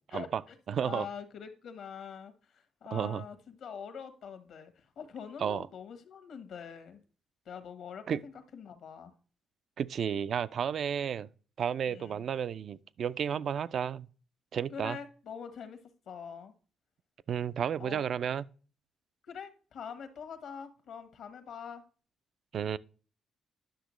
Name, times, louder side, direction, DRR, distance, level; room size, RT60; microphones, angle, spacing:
voice 1, 0.1-0.5 0.8-7.0 7.4-9.1 11.9-12.2 14.7-15.8 16.1-16.5 17.8-18.0 19.3-21.8, left 7 dB, 70° left, 1.2 m, -44 dB
voice 2, 0.7-1.1 2.9-3.2 5.4-5.7 8.1-8.2 9.8-11.3 11.6-14.1 14.5-15.0 17.3-18.5 22.5-22.8, right 8 dB, 60° right, 0.4 m, -32 dB
10.0 x 6.2 x 3.1 m
cardioid pair, 90°, 0 cm